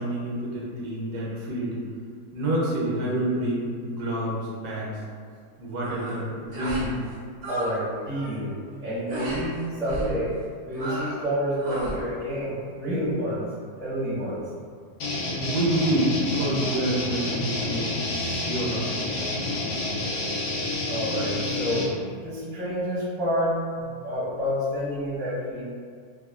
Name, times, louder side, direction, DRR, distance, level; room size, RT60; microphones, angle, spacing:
voice 1, 0.0-1.8 2.3-5.0 5.6-7.0 15.4-19.0, right 1 dB, 80° right, -4 dB, 1.1 m, -28 dB
sound 1, 5.8-6.2 6.5-6.9 7.2-7.8 8.0-8.4 9.1-9.4 9.9-10.1 10.7-11.2 11.6-12.0, equal, 60° right, 0.6 m, -33 dB
voice 2, 7.5-8.5 8.8-10.3 10.6-13.5 13.8-14.4 20.8-21.8 22.2-25.6, equal, 5° left, -11 dB, 0.4 m, -28 dB
sound 2, 15.0-21.9, left 2 dB, 80° left, 1.1 m, -29 dB
3.0 x 2.0 x 2.3 m, 2.1 s
omnidirectional pair, 1.7 m